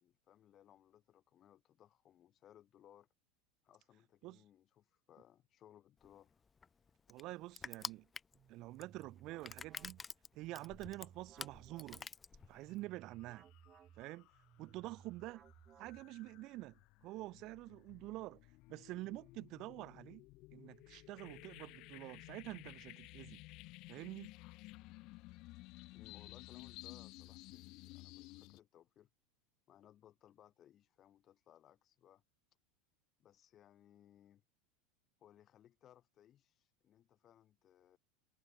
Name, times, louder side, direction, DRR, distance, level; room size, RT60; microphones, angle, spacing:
voice 1, 0.0-3.1 3.6-6.3 25.9-29.1 29.7-32.2 33.2-34.4 35.2-38.0, left 11 dB, 40° left, 3.0 m, -64 dB
Crushing, 6.0-12.8, left 5 dB, 20° left, 0.8 m, -49 dB
voice 2, 7.1-8.1 8.5-10.0 10.3-12.1 12.5-13.5 14.0-14.3 14.6-15.5 15.8-18.4 18.7-20.2 20.5-23.4 23.9-24.3, right 18 dB, 55° right, 0.5 m, -47 dB
sound 1, 8.3-16.4, right 9 dB, 35° right, 3.4 m, -62 dB
sound 2, 12.5-12.8 13.1-28.6, left 21 dB, 55° left, 0.5 m, -56 dB
hypercardioid pair, 90°, 0 cm